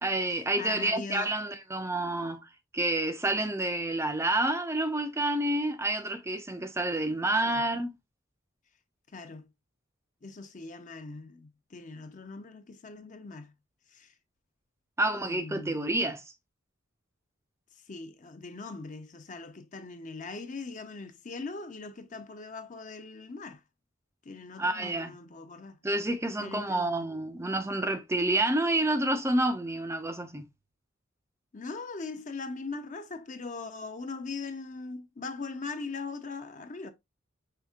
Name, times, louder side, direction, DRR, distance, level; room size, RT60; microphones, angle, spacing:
voice 1, 0.0-2.4 2.7-7.9 15.0-16.2 24.6-25.1 25.8-30.4, right 1 dB, 15° right, 0.5 m, -29 dB
voice 2, 0.6-1.3 7.5-7.6 9.1-9.5 10.2-13.5 13.9-14.1 15.2-15.9 17.8-23.6 24.2-25.8 26.4-27.1 31.5-36.9, left 3 dB, 35° left, 0.6 m, -41 dB
5.7 x 3.6 x 2.4 m
head